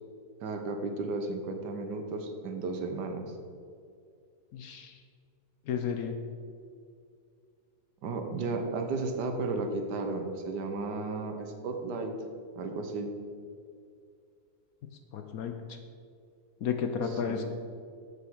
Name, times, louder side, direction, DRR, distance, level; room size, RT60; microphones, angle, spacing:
voice 1, 0.4-3.3 8.0-12.1 12.6-13.1 17.2-17.5, right 3 dB, 70° right, 5 dB, 1.5 m, -34 dB
voice 2, 4.5-5.0 5.7-6.2 15.1-15.5 16.6-17.5, left 7 dB, 65° left, 5 dB, 1.0 m, -32 dB
8.1 x 7.1 x 6.1 m, 2.3 s
omnidirectional pair, 1.9 m